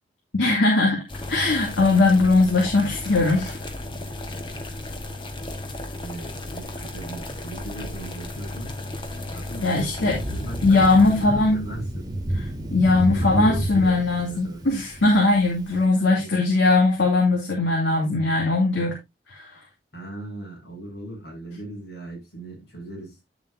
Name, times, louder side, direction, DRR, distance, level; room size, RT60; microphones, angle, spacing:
voice 1, 0.3-1.0 1.3-3.6 9.6-10.2 10.6-11.6 12.4-12.5 12.7-19.0 19.3-19.5, left 3 dB, 85° left, 2.6 m, -20 dB
sound 1, 1.1-11.3, left 2 dB, 25° left, 1.5 m, -35 dB
voice 2, 6.0-8.8 9.3-12.1 13.1-14.6 16.0-16.4 19.9-23.2, right 1 dB, 65° left, 6.8 m, -37 dB
Thunder, 10.0-15.7, right 1 dB, 20° right, 1.7 m, -30 dB
10.5 x 7.2 x 2.7 m
head